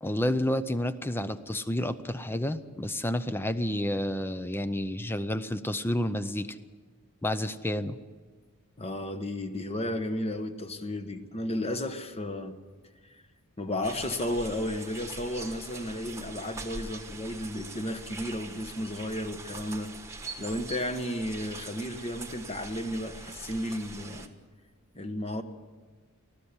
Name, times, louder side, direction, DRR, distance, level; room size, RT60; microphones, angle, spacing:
voice 1, 0.0-6.6 7.2-8.0, left 1 dB, 10° left, 12 dB, 0.6 m, -30 dB
voice 2, 8.8-12.6 13.6-19.9 20.4-24.3 24.9-25.4, left 1 dB, 30° left, 8 dB, 1.1 m, -33 dB
sound 1, 13.8-24.3, right 3 dB, 15° right, 1.2 m, -43 dB
20.0 x 14.0 x 9.8 m, 1.5 s
head